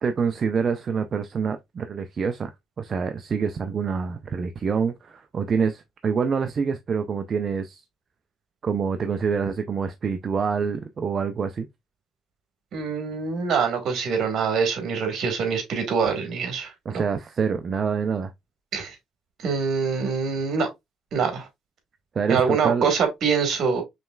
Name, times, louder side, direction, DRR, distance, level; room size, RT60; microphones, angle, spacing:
voice 1, 0.0-2.5 2.8-7.8 8.6-11.7 16.9-18.3 22.1-22.9, right 6 dB, 40° right, 0.4 m, -26 dB
voice 2, 12.7-17.0 18.7-18.9 19.4-20.7 21.1-21.5 22.3-23.8, right 5 dB, 55° right, 1.7 m, -24 dB
5.2 x 3.2 x 2.3 m
cardioid pair, 110°, 0 cm